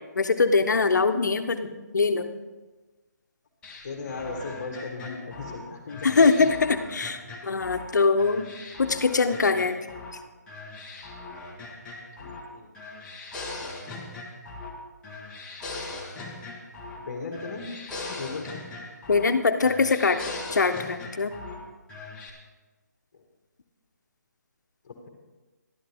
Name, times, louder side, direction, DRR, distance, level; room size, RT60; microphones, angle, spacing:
voice 1, 0.1-2.3 6.0-8.5 8.8-9.8 19.1-20.2 20.5-21.3, left 4 dB, 75° left, 8 dB, 0.9 m, -22 dB
sound 1, 3.6-7.9 8.2-10.2 10.5-12.5 12.7-14.8 15.0-17.1 17.3-19.3 19.6-21.6 21.9-22.3, left 3 dB, 10° left, 1.2 m, -40 dB
voice 2, 3.8-6.5 12.2-12.7 17.0-17.7 18.1-18.5 24.8-25.1, left 4 dB, 40° left, 2 dB, 1.6 m, -37 dB
12.5 x 12.0 x 3.5 m, 1.2 s
hypercardioid pair, 160°, 10 cm